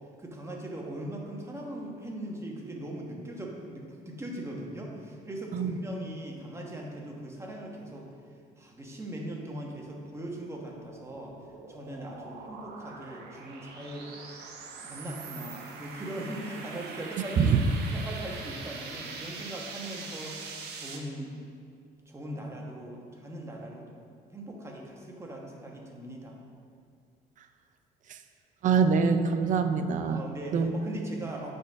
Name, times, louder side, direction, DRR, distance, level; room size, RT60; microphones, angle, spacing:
voice 1, 0.2-8.1 8.6-11.3 11.7-14.1 14.8-17.6 17.9-20.4 20.7-21.3 22.1-23.9 24.3-26.4 30.0-31.5, right 1 dB, 15° right, -1 dB, 1.2 m, -40 dB
sound 1, 10.7-21.0, right 4 dB, 75° right, 0.9 m, -43 dB
voice 2, 28.6-30.2 30.5-30.7, right 6 dB, 50° right, 8 dB, 0.5 m, -24 dB
8.9 x 5.3 x 3.5 m, 2.2 s
cardioid pair, 110°, 17 cm